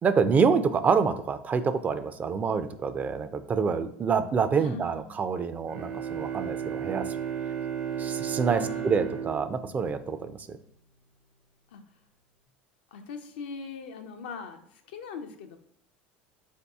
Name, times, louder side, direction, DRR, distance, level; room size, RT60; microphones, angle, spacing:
voice 1, 0.0-7.1 8.0-10.6, right 5 dB, 30° right, 11 dB, 0.4 m, -27 dB
voice 2, 4.6-5.2 8.5-9.3 11.7-11.8 12.9-15.6, left 5 dB, 80° left, 6 dB, 0.5 m, -41 dB
Bowed string instrument, 5.7-10.6, right 8 dB, 75° right, 1.1 m, -34 dB
4.0 x 2.7 x 3.5 m, 0.74 s
hypercardioid pair, 90°, 5 cm